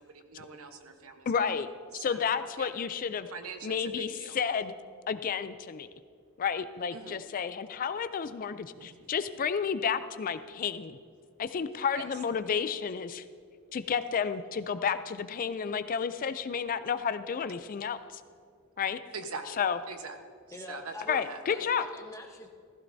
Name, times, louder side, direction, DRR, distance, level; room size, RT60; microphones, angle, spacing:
voice 1, 0.0-1.3 1.9-2.3 2.6-2.7 3.3-4.4 6.9-7.2 8.8-9.1 11.9-12.1 19.1-20.2 20.7-21.7, right 4 dB, 75° right, 6 dB, 1.1 m, -43 dB
voice 2, 1.3-1.7 1.9-3.3 3.6-4.7 5.1-5.9 6.4-11.0 11.4-13.2 13.7-18.2 18.8-19.0 19.6-19.8 21.1-21.9, left 6 dB, 40° left, 12 dB, 0.3 m, -31 dB
voice 3, 20.5-21.2 21.5-22.5, left 2 dB, 15° left, 2 dB, 1.0 m, -44 dB
15.0 x 15.0 x 2.7 m, 2.2 s
head